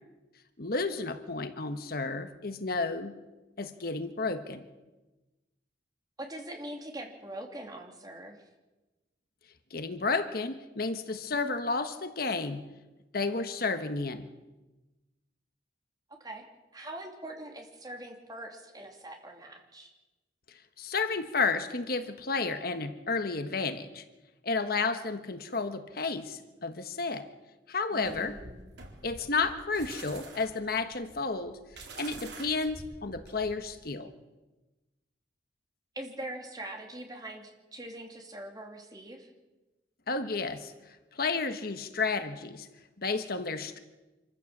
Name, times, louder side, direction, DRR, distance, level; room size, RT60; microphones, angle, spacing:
voice 1, 0.6-3.1 3.6-4.7 9.7-12.6 13.1-14.3 20.8-24.0 24.4-27.3 27.7-28.4 29.0-31.6 32.0-34.1 40.1-40.7 41.1-42.7 43.0-43.8, left 4 dB, 60° left, 9 dB, 1.3 m, -32 dB
voice 2, 6.2-8.4 16.2-16.4 16.7-19.9 27.9-28.7 35.9-39.3, right 1 dB, 20° right, 2 dB, 3.0 m, -42 dB
sound 1, 28.0-33.7, right 2 dB, 80° right, 4.1 m, -47 dB
26.0 x 15.0 x 7.4 m, 1.1 s
head